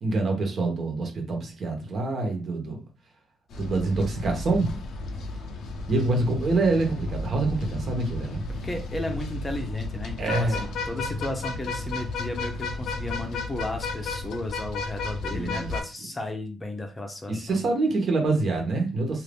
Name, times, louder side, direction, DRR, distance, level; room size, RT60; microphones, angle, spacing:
voice 1, 0.0-2.8 3.6-4.7 5.9-8.4 10.2-10.7 15.3-15.7 17.3-19.2, right 3 dB, 50° right, 1.1 m, -26 dB
sound 1, 3.5-15.8, left 3 dB, 70° left, 0.6 m, -33 dB
voice 2, 8.6-17.6, left 1 dB, 20° left, 0.7 m, -34 dB
2.6 x 2.5 x 3.5 m
cardioid pair, 90°, 0 cm